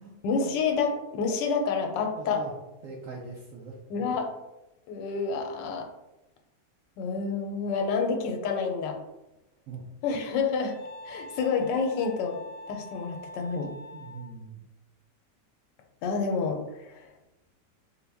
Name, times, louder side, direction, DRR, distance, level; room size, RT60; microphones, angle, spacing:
voice 1, 0.2-2.4 3.9-4.3 4.9-5.9 7.0-9.0 10.0-10.8 11.0-12.4 12.7-13.7 16.0-17.1, left 5 dB, 85° left, 4 dB, 1.3 m, -28 dB
voice 2, 2.2-2.5 2.8-3.8 9.7-9.8 13.9-14.6, right 4 dB, 70° right, -3 dB, 0.8 m, -41 dB
Wind instrument woodwind instrument, 10.7-14.3, left 2 dB, 10° right, 0.8 m, -45 dB
3.9 x 2.1 x 3.4 m, 0.96 s
omnidirectional pair, 1.9 m